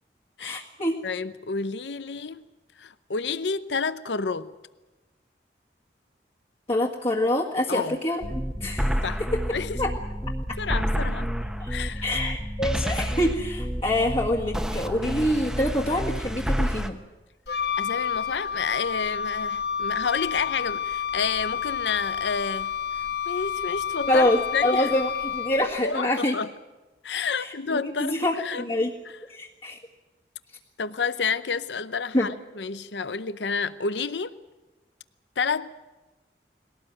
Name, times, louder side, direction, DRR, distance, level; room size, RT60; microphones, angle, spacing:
voice 1, 0.4-1.0 6.7-8.2 8.6-9.0 9.8-9.9 11.6-11.7 12.0-17.0 24.1-26.3 27.3-28.9 29.3-29.8 32.1-32.3, left 1 dB, 35° left, 1.8 m, -26 dB
voice 2, 1.0-2.4 2.8-4.5 7.7-8.0 9.0-9.2 9.5-9.8 10.6-11.4 11.7-12.1 17.8-22.7 23.3-24.9 25.8-26.5 27.0-28.6 30.8-34.3 35.4-35.7, left 5 dB, 90° left, 0.8 m, -30 dB
sound 1, 8.2-16.9, equal, 5° right, 1.1 m, -29 dB
Wind instrument woodwind instrument, 17.5-25.8, left 8 dB, 70° left, 1.6 m, -30 dB
21.5 x 17.5 x 9.0 m
head